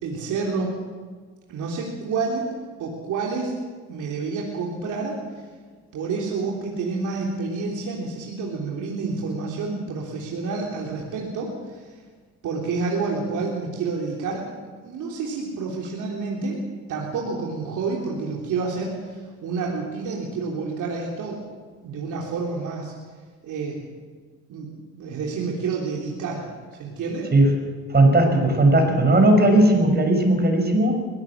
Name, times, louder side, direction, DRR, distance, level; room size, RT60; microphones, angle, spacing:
voice 1, 0.0-0.8 1.5-2.4 2.8-3.5 3.9-5.4 5.9-12.0 12.4-14.5 14.8-16.6 16.9-21.4 21.8-22.9 23.4-23.9 24.5-24.7 25.0-27.3, right 4 dB, 80° right, -2 dB, 3.5 m, -29 dB
voice 2, 27.9-31.0, right 1 dB, 35° right, 4 dB, 5.9 m, -17 dB
22.0 x 16.5 x 7.5 m, 1.5 s
cardioid pair, 90°, 30 cm